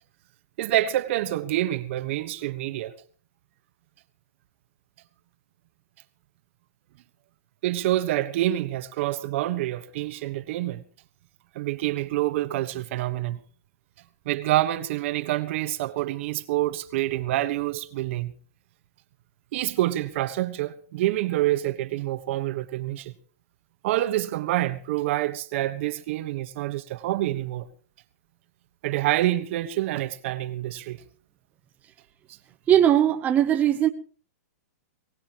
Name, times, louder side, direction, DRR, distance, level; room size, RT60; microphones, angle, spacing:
voice 1, 0.6-2.9 7.6-10.8 11.5-13.4 14.2-18.3 19.5-23.1 23.8-27.7 28.8-31.0, right 15 dB, 50° right, 1.3 m, -27 dB
voice 2, 32.7-33.9, right 10 dB, 20° right, 0.9 m, -19 dB
23.0 x 18.0 x 3.0 m
hypercardioid pair, 145°, 9 cm